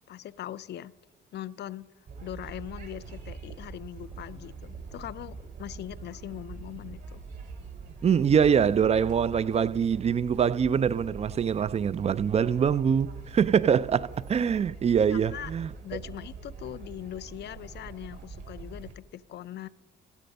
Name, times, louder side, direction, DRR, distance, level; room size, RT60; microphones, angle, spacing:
voice 1, 0.1-0.9 1.3-1.9 2.2-7.2 15.1-15.5 15.8-19.7, left 12 dB, 60° left, 0.4 m, -41 dB
sound 1, 2.1-18.9, right 4 dB, 60° right, 2.4 m, -43 dB
voice 2, 8.0-15.7, right 7 dB, 35° right, 0.3 m, -24 dB
14.5 x 9.2 x 5.4 m
cardioid pair, 90°, 20 cm